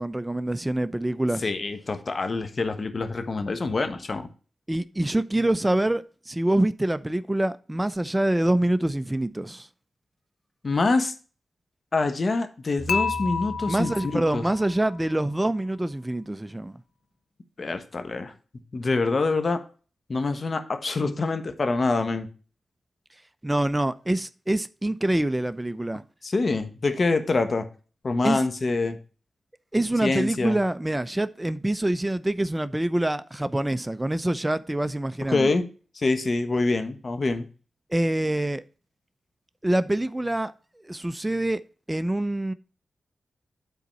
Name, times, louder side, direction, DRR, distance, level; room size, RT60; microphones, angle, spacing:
voice 1, 0.0-1.5 4.7-9.7 13.7-16.8 23.4-26.0 28.2-28.4 29.7-35.5 37.9-38.6 39.6-40.5 40.9-41.6 41.9-42.5, right 1 dB, 15° right, 0.6 m, -25 dB
voice 2, 1.4-4.3 10.6-11.1 11.9-14.4 17.6-18.3 18.7-19.6 20.1-22.3 26.2-27.7 28.0-29.0 30.0-30.6 35.3-35.6 35.9-37.5, left 3 dB, 50° left, 1.3 m, -25 dB
sound 1, 12.8-15.2, right 1 dB, 15° left, 3.0 m, -40 dB
Dishes pots and pans / Chink clink, 12.9-15.0, left 5 dB, 80° left, 0.4 m, -30 dB
9.2 x 4.0 x 5.4 m
cardioid pair, 45°, 0 cm